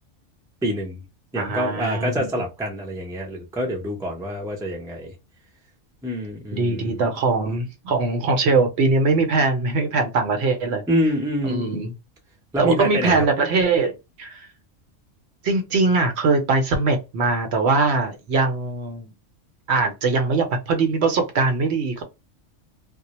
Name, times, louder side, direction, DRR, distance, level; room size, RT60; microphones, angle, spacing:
voice 1, 0.6-1.0 1.3-5.1 6.0-7.1 10.9-11.7 12.5-13.2, equal, 5° right, 0.5 m, -26 dB
voice 2, 1.4-2.3 6.5-10.8 11.4-11.9 12.6-14.5 15.4-19.1 19.7-22.0, right 3 dB, 65° right, 0.8 m, -21 dB
2.2 x 2.0 x 2.8 m
omnidirectional pair, 1.3 m